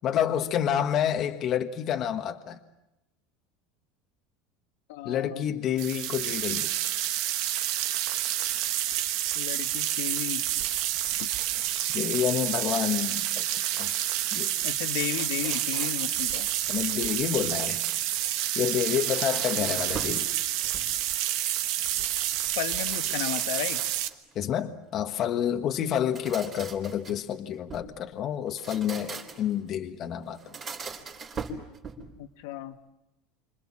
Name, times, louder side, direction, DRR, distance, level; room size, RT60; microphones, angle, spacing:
voice 1, 0.0-2.6 5.0-6.7 11.9-13.9 14.3-14.5 16.7-17.8 18.5-20.3 24.3-30.4, left 9 dB, 35° left, 1.5 m, -29 dB
voice 2, 4.9-5.4 9.4-10.5 11.2-11.3 14.6-16.5 19.5-19.9 22.6-23.9 32.2-32.8, left 13 dB, 75° left, 1.9 m, -34 dB
sound 1, 5.8-24.1, right 13 dB, 55° right, 1.4 m, -29 dB
sound 2, 15.0-16.2 18.6-20.3 20.6-21.2 22.7-24.3 25.9-27.9 28.5-29.6 30.3-32.2, right 4 dB, 25° right, 3.6 m, -41 dB
29.0 x 26.0 x 7.5 m
cardioid pair, 165°, 0 cm